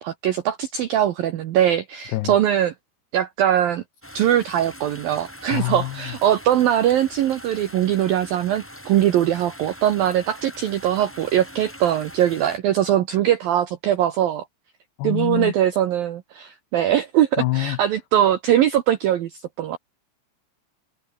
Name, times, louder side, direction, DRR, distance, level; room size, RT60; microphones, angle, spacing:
voice 1, 0.0-2.7 3.1-3.8 4.1-14.4 15.0-19.8, right 11 dB, 80° right, 2.1 m, -21 dB
sound 1, 4.0-12.6, left 1 dB, 5° left, 1.9 m, -42 dB
voice 2, 5.5-6.1 15.0-15.5 17.4-17.8, left 18 dB, 90° left, 2.3 m, -25 dB
omnidirectional pair, 5.8 m